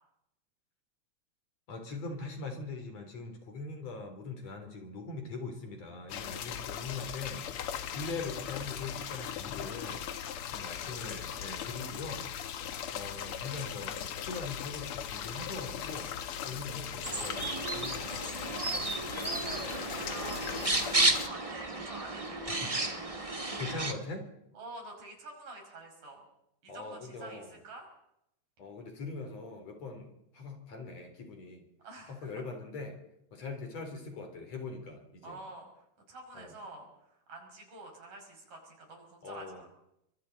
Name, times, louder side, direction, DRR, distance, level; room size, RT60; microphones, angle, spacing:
voice 1, 1.7-10.1 10.5-12.3 12.9-16.1 16.4-18.2 22.5-22.7 23.6-24.3 26.7-27.6 28.6-31.6 32.1-33.0 33.3-35.4 36.3-36.5 39.2-39.6, left 3 dB, 50° left, 5 dB, 4.3 m, -41 dB
sound 1, 6.1-21.3, left 9 dB, 70° left, 1.4 m, -39 dB
sound 2, 17.0-23.9, right 2 dB, 25° right, 0.6 m, -32 dB
voice 2, 19.1-23.0 24.6-26.2 26.6-27.9 31.8-32.3 35.2-35.7 36.1-36.9 37.3-39.7, right 2 dB, 75° right, 1 dB, 7.3 m, -48 dB
30.0 x 24.5 x 4.1 m, 0.81 s
omnidirectional pair, 3.8 m